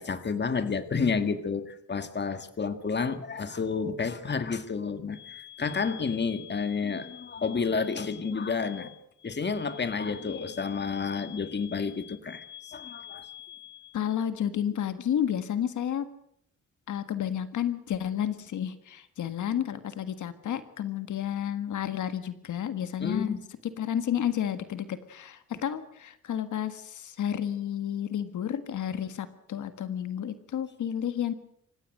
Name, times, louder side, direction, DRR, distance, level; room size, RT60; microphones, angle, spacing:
voice 1, 0.0-9.0 9.2-13.9 23.0-23.4, left 5 dB, 35° left, 10 dB, 1.9 m, -30 dB
voice 2, 13.9-16.1 16.9-23.4 23.8-31.3, left 9 dB, 85° left, 11 dB, 1.6 m, -31 dB
27.0 x 15.5 x 7.8 m, 0.69 s
cardioid pair, 115°, 29 cm